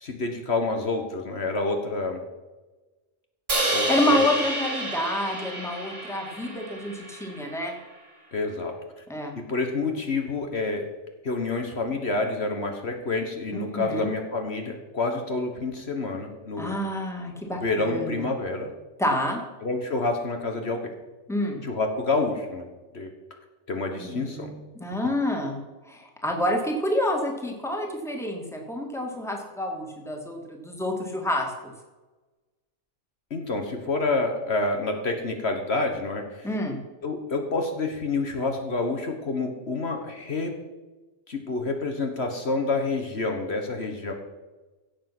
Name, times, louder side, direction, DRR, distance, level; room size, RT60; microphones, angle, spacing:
voice 1, 0.0-2.2 3.7-4.2 8.3-8.7 9.3-10.9 11.2-16.7 17.6-18.7 19.6-20.9 21.6-22.6 22.9-23.1 23.7-24.5 33.3-36.5 37.0-40.5 41.3-44.1, left 3 dB, 55° left, 4 dB, 1.6 m, -28 dB
Crash cymbal, 3.5-7.7, right 2 dB, 50° right, 2.3 m, -29 dB
voice 2, 3.7-7.7 9.1-9.4 13.5-14.1 16.6-18.3 19.0-19.4 21.3-21.6 24.0-25.6 25.9-31.7 36.4-36.8, left 1 dB, ahead, 1 dB, 2.1 m, -28 dB
16.0 x 7.4 x 6.0 m, 1.2 s
omnidirectional pair, 1.3 m